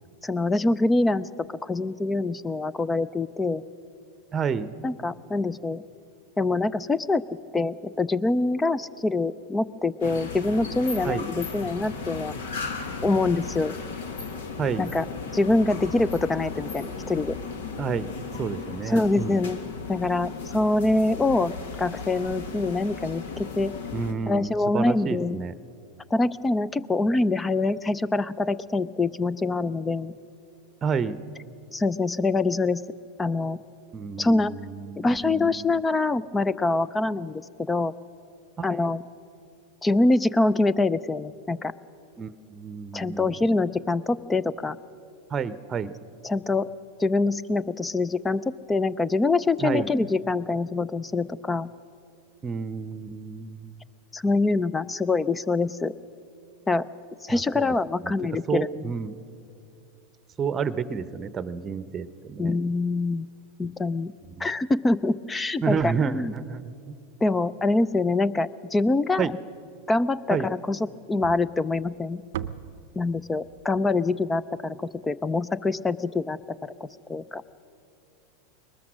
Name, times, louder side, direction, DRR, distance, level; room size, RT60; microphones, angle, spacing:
voice 1, 0.2-1.3 1.6-3.6 4.8-5.8 6.4-7.2 7.5-12.3 13.0-13.7 14.8-15.0 15.3-17.3 18.9-19.6 19.9-21.5 21.8-23.7 24.3-25.4 26.1-30.1 31.7-32.8 33.2-33.6 34.2-34.5 35.0-37.9 38.6-39.0 39.8-41.7 42.9-44.8 46.2-46.7 47.0-48.4 48.7-51.7 54.1-55.9 56.7-56.8 57.2-58.9 62.4-63.3 63.6-64.1 64.4-66.3 67.2-69.3 69.9-70.8 71.1-72.2 72.9-76.7 77.1-77.4, left 2 dB, 15° left, 19 dB, 0.5 m, -25 dB
voice 2, 4.3-4.8 11.0-11.3 14.6-14.9 17.8-18.1 18.4-19.4 23.9-25.5 30.8-31.2 33.9-35.7 38.7-38.9 42.2-43.3 45.3-46.0 49.6-49.9 52.4-53.8 57.3-57.7 58.0-58.1 58.5-59.2 60.4-62.5 64.4-64.5 65.6-66.9 69.2-69.3 70.3-70.5, right 6 dB, 30° right, 15 dB, 0.8 m, -30 dB
sound 1, 10.0-24.1, left 4 dB, 70° left, 1.7 m, -36 dB
sound 2, 71.2-75.5, right 10 dB, 70° right, 0.6 m, -41 dB
22.0 x 20.0 x 6.2 m, 2.6 s
hypercardioid pair, 95°, 0 cm